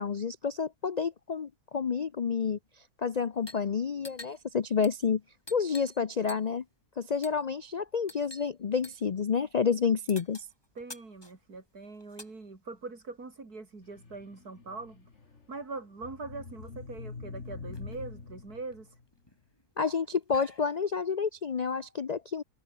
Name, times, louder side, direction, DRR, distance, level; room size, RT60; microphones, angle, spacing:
voice 1, 0.0-2.6 3.0-5.2 5.5-6.6 7.0-10.5 19.8-22.4, left 6 dB, 75° left, 0.3 m, -29 dB
sound 1, 3.3-3.7 4.0-6.0 6.3-6.7 7.2-7.5 8.1-8.5 8.8-9.1 10.1-12.4 13.4-14.5 15.7-15.8 16.0-16.7 17.1-17.2 17.4-18.0 18.5-20.9, left 1 dB, 15° left, 3.5 m, -50 dB
voice 2, 10.8-15.1 15.5-19.0, right 3 dB, 70° right, 4.3 m, -42 dB
sound 2, 13.8-19.1, left 4 dB, 45° left, 2.6 m, -45 dB
omnidirectional pair, 1.7 m